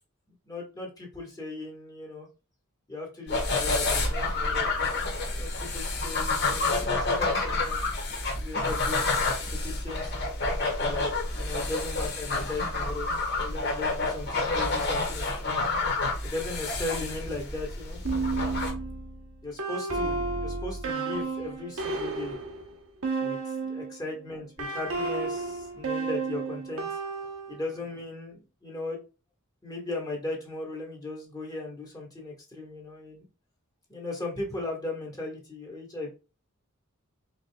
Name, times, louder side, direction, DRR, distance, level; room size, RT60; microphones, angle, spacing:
voice 1, 0.4-2.3 2.9-7.9 8.3-9.2 9.5-10.1 10.8-13.1 13.3-15.7 16.2-18.0 19.4-22.4 23.2-26.9 27.5-29.0 29.6-33.3 33.9-36.1, left 2 dB, 15° left, -1 dB, 1.5 m, -37 dB
sound 1, 3.3-18.7, left 3 dB, 50° left, 1.4 m, -29 dB
sound 2, 18.0-24.0 24.6-27.8, right 3 dB, 75° right, 1.1 m, -32 dB
5.1 x 4.0 x 2.3 m, 0.32 s
head